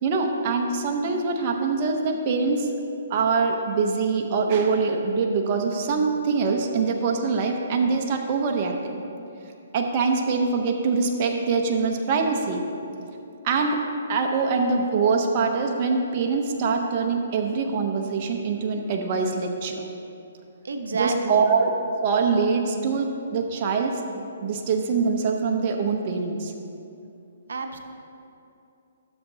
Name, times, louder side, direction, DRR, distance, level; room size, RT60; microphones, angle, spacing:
voice 1, 0.0-2.7 3.1-9.0 9.7-12.6 13.4-13.8 14.1-19.9 20.9-21.7 22.0-23.9 24.4-26.5, right 4 dB, 35° right, 2 dB, 0.7 m, -24 dB
voice 2, 20.6-21.5 27.5-27.8, right 3 dB, 80° right, 5 dB, 0.7 m, -29 dB
12.5 x 7.1 x 2.7 m, 2.7 s
hypercardioid pair, 155°, 0 cm